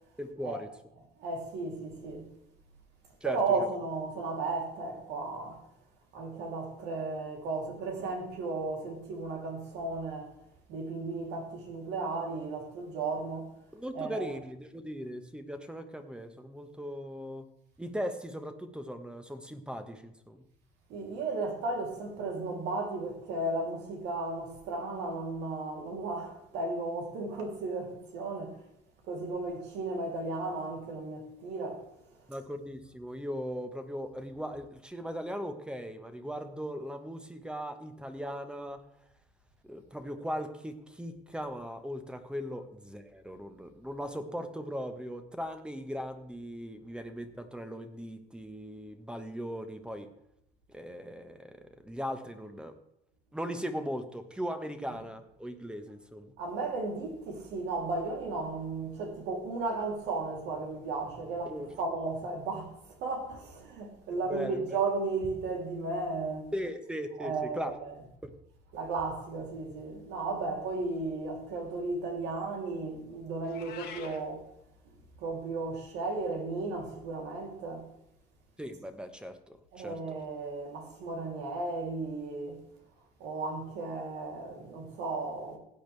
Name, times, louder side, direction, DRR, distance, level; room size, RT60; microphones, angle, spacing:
voice 1, 0.2-0.7 3.2-3.4 13.7-17.5 17.8-20.4 32.3-38.8 39.6-50.1 50.7-52.8 53.3-56.3 61.4-61.7 64.3-64.8 66.5-67.7 68.2-68.3 78.6-80.2, equal, 5° right, 1.3 m, -38 dB
voice 2, 1.2-2.3 3.2-5.6 6.1-10.3 10.7-13.5 13.9-14.3 20.9-28.6 29.1-31.8 56.4-66.5 67.2-67.9 68.7-74.5 75.2-77.9 79.7-82.6 83.2-85.6, right 3 dB, 85° right, 3.3 m, -35 dB
Meow, 73.4-74.2, left 8 dB, 75° left, 1.7 m, -45 dB
16.0 x 9.0 x 3.4 m
cardioid pair, 110°, 17 cm